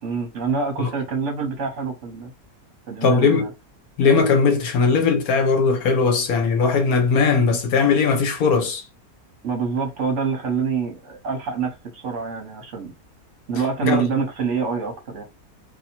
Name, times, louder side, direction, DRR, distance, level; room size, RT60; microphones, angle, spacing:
voice 1, 0.0-2.3 2.9-3.5 9.4-12.9 13.5-15.2, right 5 dB, 55° right, 1.1 m, -26 dB
voice 2, 3.0-3.5 4.0-8.8 13.8-14.0, left 5 dB, 70° left, 1.3 m, -19 dB
2.7 x 2.7 x 4.2 m
omnidirectional pair, 1.6 m